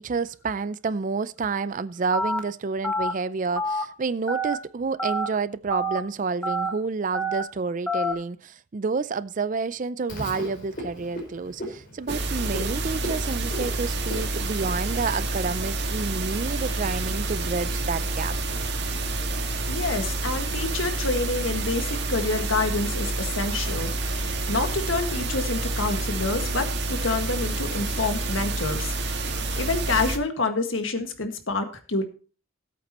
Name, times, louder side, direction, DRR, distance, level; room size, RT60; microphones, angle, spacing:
voice 1, 0.0-18.4, right 4 dB, 40° right, 0.4 m, -29 dB
Telephone, 2.1-2.4 2.8-3.1 3.6-3.8 4.3-4.5 5.0-5.3 5.7-6.0 6.4-6.7 7.1-7.4 7.9-8.1, right 1 dB, 5° left, 1.4 m, -26 dB
Frog, 10.1-15.3, equal, 45° left, 4.9 m, -37 dB
sound 1, 12.1-30.2, right 2 dB, 55° right, 1.9 m, -28 dB
voice 2, 19.7-23.9 24.2-32.0, left 3 dB, 75° left, 1.8 m, -28 dB
18.0 x 8.4 x 3.0 m
head